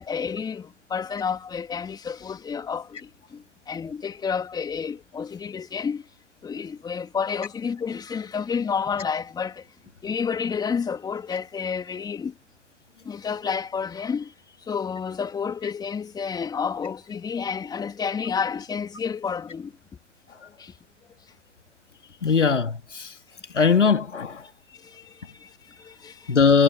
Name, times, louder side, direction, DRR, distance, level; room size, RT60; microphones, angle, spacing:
voice 1, 0.0-6.1 6.4-9.7 10.0-12.3 13.0-14.3 14.7-19.7 20.6-20.7 22.4-22.5 24.7-26.4, left 6 dB, 10° left, 3.3 m, -30 dB
voice 2, 22.2-23.1 23.5-24.4 26.3-26.6, left 5 dB, 75° left, 3.0 m, -20 dB
figure-of-eight pair, 120°, 36 cm